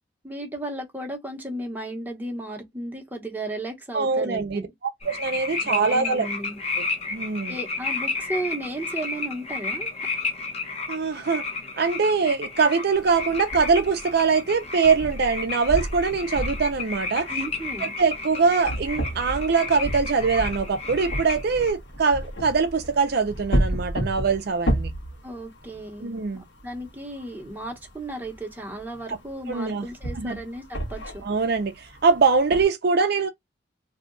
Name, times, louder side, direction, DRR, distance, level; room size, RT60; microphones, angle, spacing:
voice 1, 0.2-4.7 5.6-6.6 7.5-9.9 17.3-17.9 25.2-31.2, right 1 dB, 10° right, 0.9 m, -34 dB
voice 2, 3.9-4.7 5.0-6.3 7.1-7.5 10.9-11.4 11.8-17.5 17.8-24.9 26.0-26.4 29.5-29.9 30.2-30.4 31.2-33.3, right 5 dB, 60° right, 0.5 m, -23 dB
sound 1, 5.0-21.7, left 4 dB, 35° left, 0.8 m, -32 dB
sound 2, 12.9-32.6, right 1 dB, 70° left, 1.2 m, -33 dB
2.8 x 2.2 x 3.7 m
head